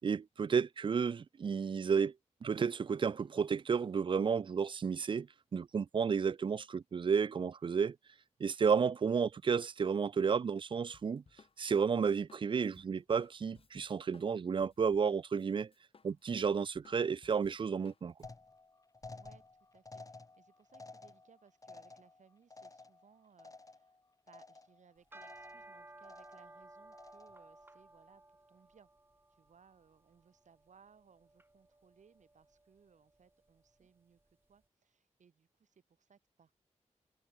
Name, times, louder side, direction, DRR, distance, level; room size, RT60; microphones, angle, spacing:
voice 1, 0.0-2.1 2.4-5.3 5.5-8.0 8.4-11.2 11.6-15.7 16.0-18.1, right 6 dB, 40° right, 0.4 m, -32 dB
Drum kit, 10.9-15.5 15.7-18.3, left 4 dB, 50° left, 1.8 m, -63 dB
sound 1, 18.2-24.0 24.3-24.8 25.2-25.7 26.0-26.6 26.9-27.5, left 3 dB, 25° left, 1.2 m, -53 dB
voice 2, 19.1-24.0 24.3-28.9 29.3-34.2 34.5-36.5, right 6 dB, 80° right, 6.6 m, -65 dB
sound 2, 25.0-34.3, right 2 dB, 20° right, 1.6 m, -58 dB
wide cardioid pair, 80°, 12 cm